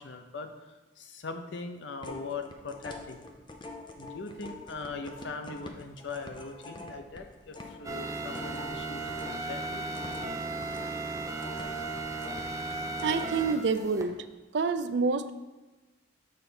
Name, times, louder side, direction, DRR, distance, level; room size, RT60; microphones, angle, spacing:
voice 1, 0.0-3.3 4.0-9.9 10.5-10.6 11.7-12.1, left 4 dB, 80° left, 6 dB, 0.7 m, -41 dB
sound 1, 2.0-9.4 9.7-13.4 13.8-13.9, left 3 dB, 25° left, 0.6 m, -45 dB
sound 2, 7.8-14.0, right 3 dB, 20° right, 0.6 m, -36 dB
voice 2, 13.0-14.3 14.5-15.3, right 4 dB, 70° right, 12 dB, 0.4 m, -27 dB
6.6 x 4.0 x 5.6 m, 1.2 s
head